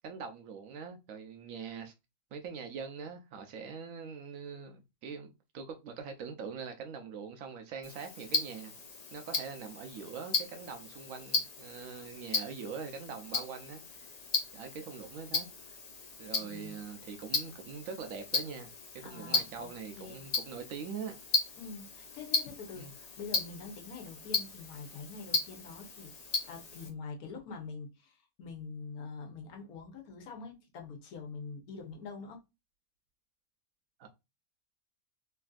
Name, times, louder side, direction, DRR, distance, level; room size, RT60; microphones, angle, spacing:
voice 1, 0.0-1.9 2.3-8.7 9.1-13.8 14.5-15.8 16.2-18.7 18.9-21.2 22.8-22.9 34.0-34.1, right 6 dB, 70° right, 0.9 m, -43 dB
Tick-tock, 7.8-26.9, left 4 dB, 65° left, 0.4 m, -36 dB
voice 2, 16.4-16.8 19.0-19.7 20.0-20.2 21.6-26.1 26.5-32.4, left 4 dB, 85° left, 1.3 m, -45 dB
3.3 x 2.6 x 2.3 m
omnidirectional pair, 1.5 m